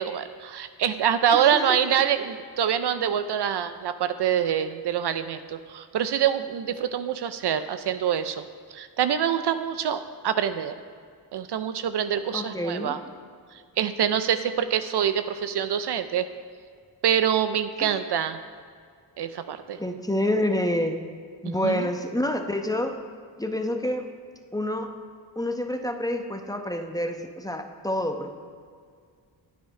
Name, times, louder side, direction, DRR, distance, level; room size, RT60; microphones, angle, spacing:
voice 1, 0.0-8.4 8.7-10.8 11.3-13.0 13.8-16.3 17.0-18.4 19.2-19.8 21.4-21.9, right 9 dB, 60° right, 11 dB, 0.6 m, -25 dB
voice 2, 12.3-13.0 17.8-18.0 19.8-21.0 21.4-23.0 23.4-24.1 24.5-24.9 25.4-28.3, left 1 dB, 10° left, 5 dB, 0.8 m, -27 dB
9.2 x 8.7 x 4.8 m, 2.1 s
cardioid pair, 60°, 46 cm